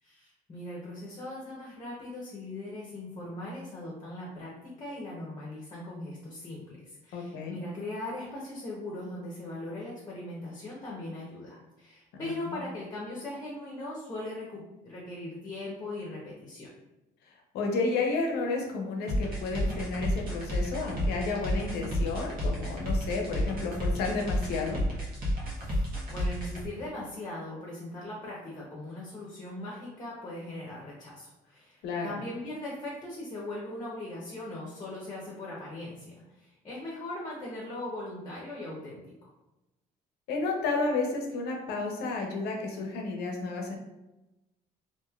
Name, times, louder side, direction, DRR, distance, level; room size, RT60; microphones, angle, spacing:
voice 1, 0.0-16.7 25.5-39.0, left 1 dB, 20° left, -4 dB, 0.8 m, -40 dB
voice 2, 7.1-7.6 12.2-12.6 17.5-24.8 31.8-32.1 40.3-43.8, left 3 dB, 75° left, 1 dB, 0.6 m, -31 dB
sound 1, 19.1-26.6, equal, 60° right, 1.0 m, -30 dB
3.0 x 2.6 x 2.3 m, 0.99 s
cardioid pair, 110°, 17 cm